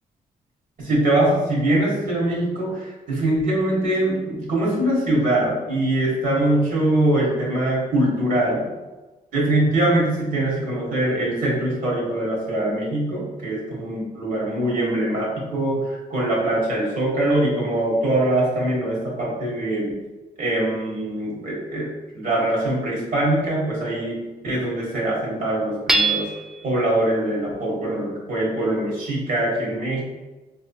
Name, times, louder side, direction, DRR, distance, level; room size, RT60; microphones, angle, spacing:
voice 1, 0.8-8.7 9.3-20.0 20.4-21.9 22.1-26.3 26.6-30.0, right 1 dB, 60° right, -5 dB, 1.5 m, -23 dB
Hammer / Chink clink, 25.9-26.7, right 3 dB, 5° right, 0.4 m, -22 dB
4.5 x 2.9 x 2.3 m, 1.2 s
cardioid pair, 85°, 16 cm